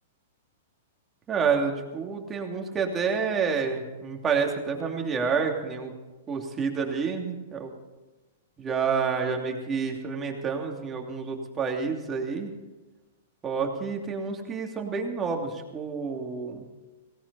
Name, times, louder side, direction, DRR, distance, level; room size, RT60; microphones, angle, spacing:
voice 1, 1.3-5.9 6.3-7.7 8.6-12.5 13.4-16.6, right 5 dB, 20° right, 1 dB, 2.9 m, -29 dB
18.0 x 17.5 x 4.3 m, 1.2 s
hypercardioid pair, 130°, 0 cm